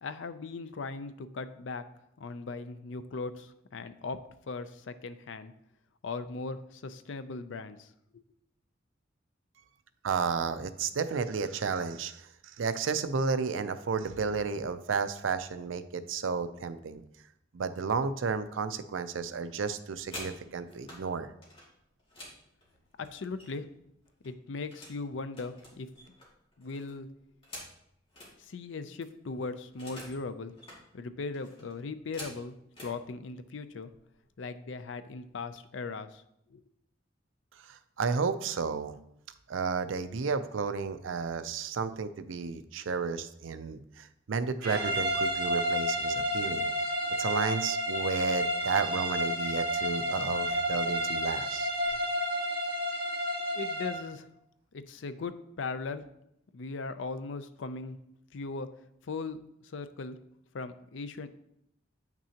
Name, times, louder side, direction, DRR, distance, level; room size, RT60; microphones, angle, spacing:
voice 1, 0.0-1.8 2.2-4.2 4.5-5.5 6.0-7.9 23.0-23.7 24.2-25.9 26.6-27.1 28.4-30.5 30.9-33.9 34.4-36.2 36.5-36.6 53.5-54.3 54.7-56.0 56.5-58.0 58.3-58.7 59.0-60.2 60.5-61.3, left 3 dB, 70° left, 11 dB, 0.5 m, -38 dB
voice 2, 10.0-17.0 17.5-21.3 37.6-39.0 39.5-46.7 47.2-51.7, right 5 dB, 85° right, 12 dB, 0.5 m, -32 dB
sound 1, 19.8-21.0 21.4-23.7 24.0-25.0 25.3-28.3 28.7-28.8 29.0-30.2 30.5-30.8 31.3-33.0 33.8-34.0 34.3-34.6 34.9-35.4, left 1 dB, 30° left, 2.3 m, -48 dB
sound 2, 44.6-54.1, equal, 50° right, 1.7 m, -31 dB
8.8 x 6.0 x 2.8 m, 0.77 s
head